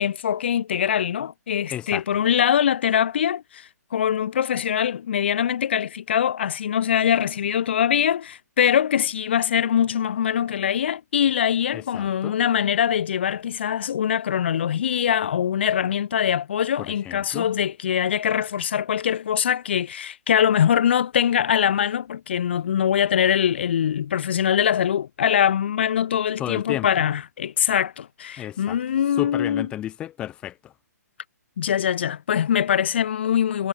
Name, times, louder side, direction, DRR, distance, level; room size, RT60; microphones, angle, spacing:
voice 1, 0.0-29.7 31.6-33.7, left 9 dB, 40° left, 6.7 m, -23 dB
voice 2, 1.7-2.0 11.7-12.4 16.8-17.5 26.4-26.9 28.4-28.8 29.2-30.7, left 12 dB, 10° left, 6.2 m, -32 dB
hypercardioid pair, 175°, 9 cm